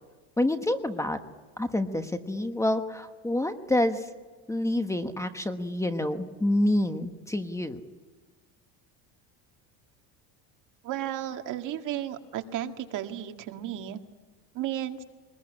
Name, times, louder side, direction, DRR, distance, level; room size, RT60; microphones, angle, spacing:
voice 1, 0.4-1.2 1.6-4.1 4.5-7.8, left 1 dB, 10° left, 8 dB, 1.2 m, -27 dB
voice 2, 10.8-14.0 14.5-15.0, right 11 dB, 50° right, 6 dB, 2.0 m, -33 dB
24.0 x 20.5 x 10.0 m, 1.3 s
cardioid pair, 145°, 39 cm